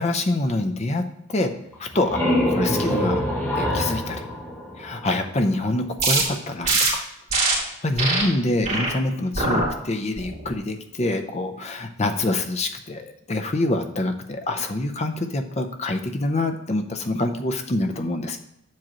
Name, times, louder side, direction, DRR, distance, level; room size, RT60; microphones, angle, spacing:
voice 1, 0.0-1.5 1.8-3.3 3.5-4.3 4.8-7.0 7.4-18.4, left 2 dB, 30° left, 5 dB, 0.6 m, -26 dB
sound 1, 1.7-5.4, left 1 dB, 10° left, 1.0 m, -25 dB
sound 2, 6.0-6.2 6.6-6.9 7.3-7.5 8.0-8.2 8.6-8.9 9.3-9.7 10.2-10.5, right 3 dB, 35° right, 2.6 m, -22 dB
7.5 x 7.5 x 3.0 m, 0.84 s
head